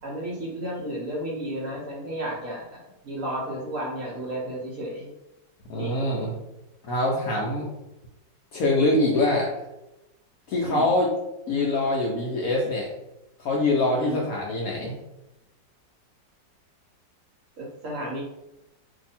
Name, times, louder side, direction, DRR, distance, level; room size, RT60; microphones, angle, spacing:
voice 1, 0.0-5.1 5.8-6.0 10.6-10.9 13.9-14.2 17.6-18.2, right 1 dB, 60° right, -3 dB, 1.0 m, -33 dB
voice 2, 5.7-6.3 6.9-7.7 8.5-9.5 10.5-11.1 11.5-12.9 13.4-15.0, left 2 dB, 70° left, -3 dB, 0.9 m, -24 dB
2.7 x 2.6 x 4.2 m, 0.94 s
omnidirectional pair, 2.0 m